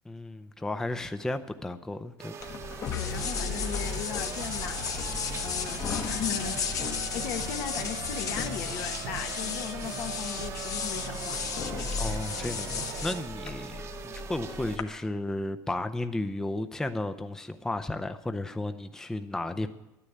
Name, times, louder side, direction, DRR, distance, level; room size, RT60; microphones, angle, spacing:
voice 1, 0.0-2.3 12.0-19.7, left 2 dB, 5° left, 9 dB, 0.5 m, -33 dB
sound 1, 2.2-14.8, right 7 dB, 35° right, 0.9 m, -43 dB
sound 2, 2.4-14.8, left 6 dB, 45° left, 1.4 m, -34 dB
voice 2, 2.9-5.0 5.4-11.4, left 8 dB, 75° left, 5 dB, 1.6 m, -38 dB
sound 3, 3.1-13.2, right 10 dB, 75° right, 0.7 m, -42 dB
12.0 x 9.9 x 8.6 m, 0.99 s
cardioid pair, 130°, 8 cm